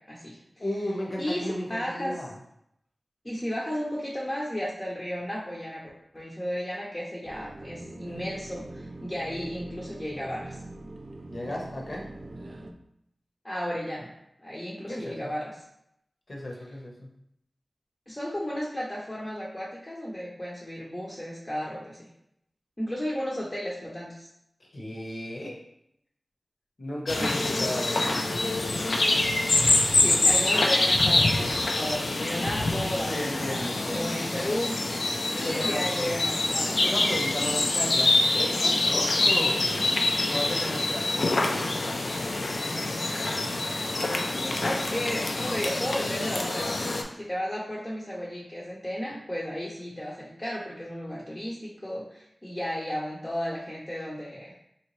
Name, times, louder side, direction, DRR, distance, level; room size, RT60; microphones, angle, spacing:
voice 1, 0.6-2.3 11.3-12.0 14.9-15.3 16.3-17.1 24.6-25.6 26.8-28.2 33.1-34.2 35.3-36.2 36.8-39.8 40.3-41.8, left 1 dB, 55° left, -2 dB, 0.8 m, -34 dB
voice 2, 1.2-2.2 3.2-10.5 13.4-14.1 14.4-15.6 18.1-22.1 22.8-24.3 27.2-27.3 27.6-28.0 29.9-34.7 35.3-37.0 44.3-46.8 47.2-54.6, equal, 20° left, -5 dB, 0.6 m, -34 dB
sound 1, 7.2-12.7, right 2 dB, 45° right, 0.3 m, -43 dB
sound 2, 27.1-47.0, left 2 dB, 75° left, 0.4 m, -25 dB
3.2 x 2.8 x 3.0 m, 0.76 s
wide cardioid pair, 65°, 0 cm